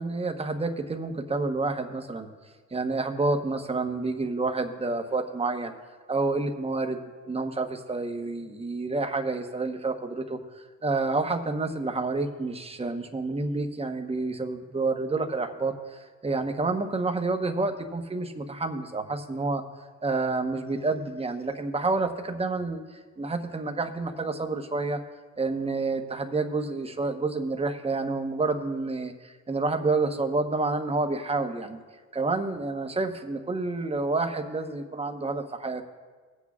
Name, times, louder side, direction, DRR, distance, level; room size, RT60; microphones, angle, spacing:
voice 1, 0.0-2.3 2.7-5.7 6.1-7.0 7.3-10.4 10.8-19.6 20.0-22.8 23.2-25.0 25.4-31.8 32.1-35.8, right 3 dB, 20° right, 5 dB, 1.0 m, -29 dB
20.5 x 8.3 x 2.4 m, 1.5 s
cardioid pair, 90°, 30 cm